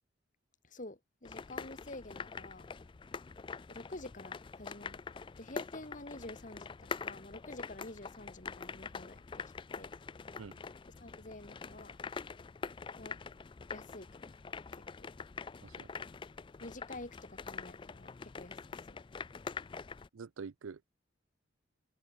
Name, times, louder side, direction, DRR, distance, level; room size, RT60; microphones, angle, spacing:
voice 1, 0.6-2.7 3.7-9.9 11.0-12.0 13.0-13.2 13.7-14.3 15.0-15.1 16.6-19.0, left 2 dB, 40° left, 2.2 m, -49 dB
sound 1, 1.3-20.1, left 5 dB, 25° left, 0.3 m, -45 dB
voice 2, 15.6-15.9 20.1-21.0, right 5 dB, 80° right, 0.5 m, -46 dB
head